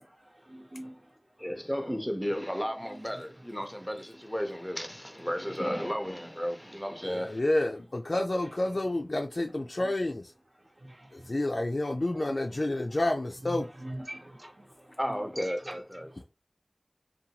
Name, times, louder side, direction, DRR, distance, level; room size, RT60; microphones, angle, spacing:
voice 1, 0.5-1.0 5.8-5.9 9.8-9.9 10.8-11.3 12.1-12.5 12.9-13.0 13.4-15.8 16.0-16.1, right 1 dB, 60° right, 1.0 m, -43 dB
voice 2, 1.4-7.4 15.0-16.2, equal, 5° left, 0.6 m, -34 dB
voice 3, 7.0-10.2 11.1-13.7, left 1 dB, 65° left, 0.3 m, -29 dB
2.7 x 2.2 x 2.8 m
wide cardioid pair, 45°, 0 cm